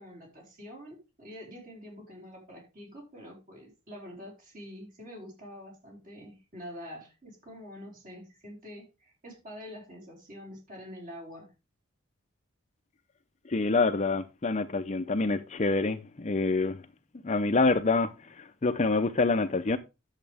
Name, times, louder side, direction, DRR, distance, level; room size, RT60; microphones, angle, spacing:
voice 1, 0.0-11.5, equal, 40° right, 4.5 m, -46 dB
voice 2, 13.5-16.8 17.2-19.8, left 3 dB, 35° left, 0.6 m, -26 dB
10.5 x 7.3 x 3.4 m
head